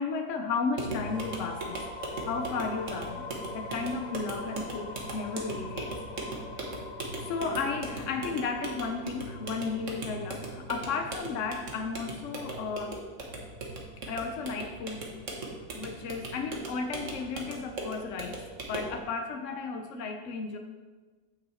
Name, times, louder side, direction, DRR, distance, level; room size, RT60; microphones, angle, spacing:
voice 1, 0.0-1.8 2.2-3.3 3.5-5.9 7.2-13.1 14.1-15.4 15.7-20.6, left 4 dB, 80° left, 5 dB, 0.6 m, -34 dB
sound 1, 0.7-19.0, right 2 dB, 45° right, 1.4 m, -39 dB
sound 2, 1.0-12.8, left 4 dB, 50° left, 0.8 m, -44 dB
7.6 x 6.2 x 4.2 m, 1.4 s
omnidirectional pair, 2.0 m